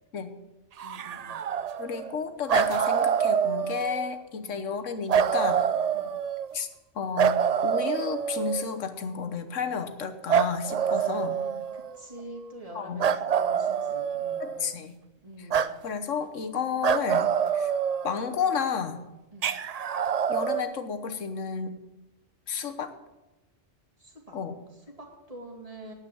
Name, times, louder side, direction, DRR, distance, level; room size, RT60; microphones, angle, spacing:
voice 1, 0.8-1.5 4.3-4.6 5.9-6.1 10.9-14.8 15.2-15.7 19.3-19.5 24.0-24.4 24.7-25.9, right 1 dB, 30° right, -1 dB, 2.3 m, -46 dB
sound 1, 0.8-2.2 2.5-4.1 5.1-6.6 7.2-8.8 10.3-12.0 13.0-14.7 15.5-15.7 16.8-18.5 19.4-20.6, right 8 dB, 85° right, 0.3 m, -26 dB
voice 2, 1.8-5.7 6.5-6.7 6.9-11.4 12.7-13.0 14.4-14.9 15.4-15.5 15.8-17.7 18.0-19.0 20.3-21.8 22.5-22.9 24.3-24.5, left 6 dB, 75° left, 9 dB, 1.4 m, -32 dB
9.4 x 8.6 x 7.7 m, 1.0 s
omnidirectional pair, 1.3 m